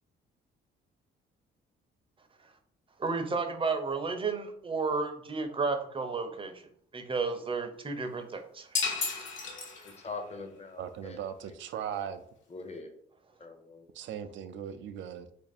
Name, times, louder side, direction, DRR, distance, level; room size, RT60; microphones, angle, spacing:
voice 1, 3.0-6.5 6.9-8.7, right 4 dB, 25° right, 6 dB, 0.6 m, -32 dB
sound 1, 8.7-10.2, left 4 dB, 70° left, 1.1 m, -33 dB
voice 2, 9.8-11.2 11.4-11.5 12.5-12.9 13.4-13.9, left 3 dB, 35° left, 6 dB, 0.7 m, -42 dB
voice 3, 10.8-12.2 13.9-15.3, right 9 dB, 70° right, 10 dB, 0.4 m, -38 dB
2.8 x 2.6 x 4.1 m, 0.65 s
cardioid pair, 90°, 20 cm